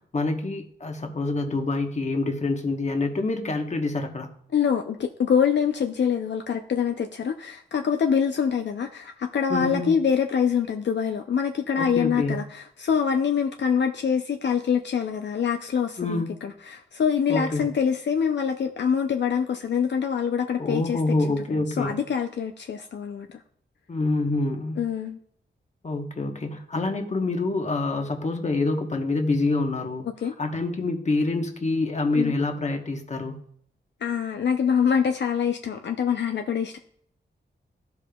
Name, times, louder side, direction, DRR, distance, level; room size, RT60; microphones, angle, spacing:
voice 1, 0.0-4.3 9.5-10.0 11.8-12.4 16.0-16.4 17.3-17.7 20.6-22.0 23.9-24.8 25.8-30.0 30.4-33.4, left 2 dB, 40° left, 1.1 m, -26 dB
voice 2, 4.5-21.2 21.5-23.4 24.8-25.2 30.2-30.3 32.1-32.3 34.0-36.8, left 7 dB, 70° left, 0.5 m, -25 dB
14.5 x 5.0 x 2.3 m
wide cardioid pair, 115°, 19 cm